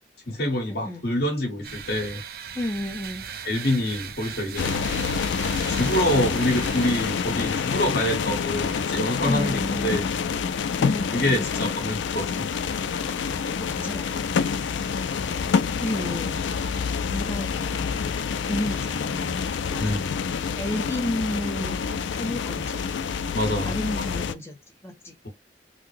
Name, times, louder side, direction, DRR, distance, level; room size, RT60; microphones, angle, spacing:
voice 1, 0.3-2.2 3.4-4.8 5.7-10.0 11.1-12.5 19.8-20.1 23.3-23.7, left 1 dB, 60° left, 1.6 m, -26 dB
sound 1, 1.6-8.8, right 7 dB, 55° right, 0.5 m, -39 dB
voice 2, 2.5-3.2 9.2-10.1 10.8-11.5 13.0-14.2 15.8-16.4 17.1-18.0 18.4-19.4 19.7-20.0 20.6-21.8 22.1-22.8 23.6-24.6 24.8-25.1, left 1 dB, 15° left, 0.6 m, -32 dB
sound 2, 4.6-24.3, left 6 dB, 90° left, 0.4 m, -27 dB
3.8 x 2.1 x 3.2 m
head